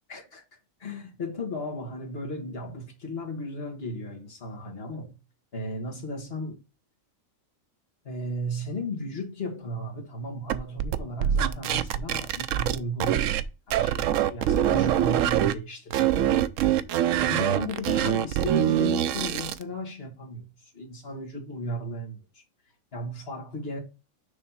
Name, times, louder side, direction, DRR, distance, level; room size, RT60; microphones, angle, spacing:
voice 1, 0.1-5.2 5.5-6.6 8.0-13.4 13.7-16.8 17.2-22.4 22.9-23.8, left 1 dB, 45° left, 1.8 m, -35 dB
sound 1, 10.5-13.4 13.7-15.5 15.9-19.6, right 11 dB, 70° right, 0.9 m, -24 dB
6.5 x 3.2 x 5.6 m
omnidirectional pair, 1.4 m